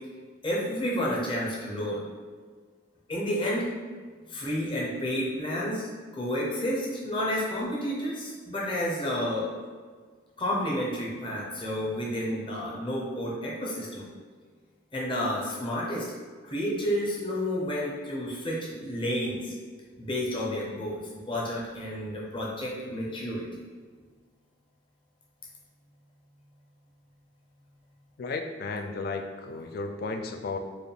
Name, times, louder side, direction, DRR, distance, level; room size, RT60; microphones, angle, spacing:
voice 1, 0.4-2.1 3.1-3.7 4.3-5.9 6.1-9.6 10.4-14.0 14.9-16.1 16.4-19.5 20.0-23.4, equal, 25° left, -5 dB, 0.8 m, -30 dB
voice 2, 28.2-30.6, left 3 dB, 50° left, 6 dB, 0.3 m, -34 dB
4.8 x 2.4 x 3.3 m, 1.5 s
head